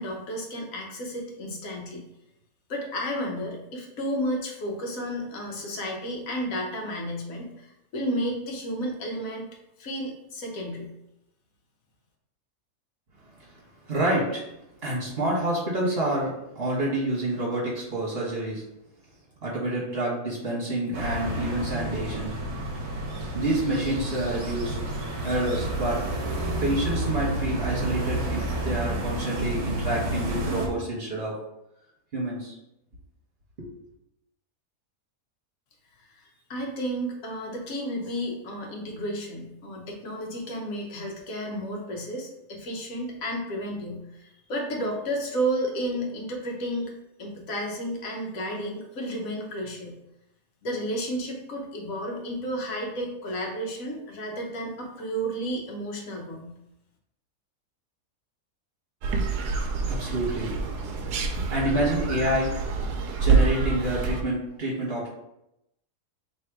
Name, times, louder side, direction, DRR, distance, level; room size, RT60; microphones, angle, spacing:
voice 1, 0.0-2.0 2.7-9.5 9.8-10.9 36.0-46.9 47.2-49.9 50.6-56.5, equal, 60° left, 0 dB, 1.3 m, -32 dB
voice 2, 13.9-14.5 14.8-18.6 19.4-22.6 23.3-24.8 25.2-26.0 26.6-31.4 32.1-32.5 33.6-33.7 59.8-60.9 61.5-62.6 63.2-65.1, right 1 dB, 40° right, -6 dB, 1.6 m, -28 dB
sound 1, 20.9-30.7, right 1 dB, 60° right, 1.3 m, -30 dB
sound 2, 59.0-64.2, right 4 dB, 90° right, 1.2 m, -26 dB
3.3 x 3.2 x 4.8 m, 0.85 s
omnidirectional pair, 1.7 m